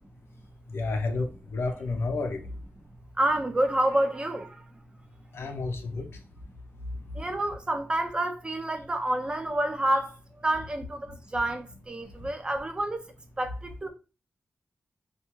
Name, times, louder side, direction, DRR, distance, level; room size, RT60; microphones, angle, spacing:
voice 1, 0.7-2.5 5.3-6.1 12.2-12.3, left 3 dB, 75° left, 0.5 m, -31 dB
voice 2, 3.2-4.7 7.1-13.0 13.4-13.9, right 1 dB, 20° right, 0.4 m, -28 dB
2.3 x 2.2 x 2.9 m
wide cardioid pair, 140°, 4 cm